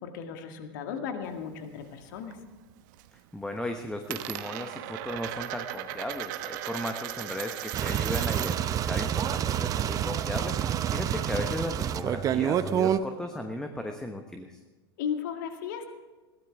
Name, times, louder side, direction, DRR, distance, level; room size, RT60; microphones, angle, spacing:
voice 1, 0.0-2.4 15.0-15.8, left 7 dB, 55° left, 6 dB, 2.0 m, -35 dB
Coin (dropping), 1.2-2.4 2.7-3.2 3.5-8.8 9.0-10.7, right 13 dB, 50° right, 1.0 m, -38 dB
voice 2, 3.3-14.6, left 1 dB, 5° left, 5 dB, 1.1 m, -36 dB
sound 1, 7.7-13.0, right 10 dB, 25° right, 0.7 m, -28 dB
21.5 x 16.5 x 3.6 m, 1.3 s
figure-of-eight pair, 85°, 13 cm